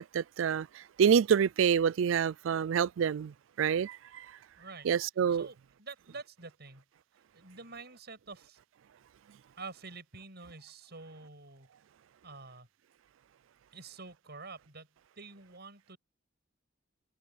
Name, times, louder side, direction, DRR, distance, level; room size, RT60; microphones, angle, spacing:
voice 1, 0.0-4.3 4.8-5.5, right 7 dB, 80° right, 0.4 m, -27 dB
voice 2, 4.6-4.9 5.3-6.8 7.3-8.6 9.6-11.7 12.2-12.7 13.7-14.9 15.2-16.0, right 3 dB, 55° right, 7.9 m, -48 dB
head